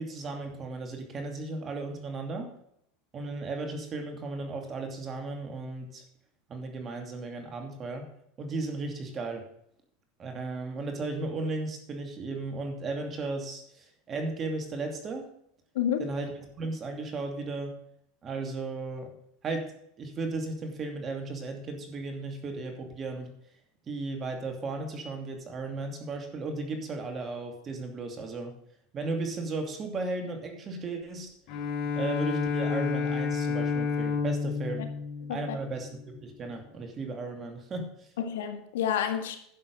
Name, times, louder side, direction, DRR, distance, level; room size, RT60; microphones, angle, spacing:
voice 1, 0.0-2.5 3.1-6.0 6.5-8.1 8.4-9.5 10.2-15.3 16.0-17.8 18.2-19.1 19.4-23.3 23.9-28.6 28.9-31.3 32.0-34.9 35.3-35.9 36.2-38.1, right 3 dB, 30° right, 2.7 m, -35 dB
Bowed string instrument, 31.5-36.1, left 5 dB, 60° left, 4.3 m, -30 dB
voice 2, 38.2-39.4, left 9 dB, 85° left, 1.6 m, -29 dB
11.5 x 7.5 x 5.4 m
supercardioid pair, 120°, 0 cm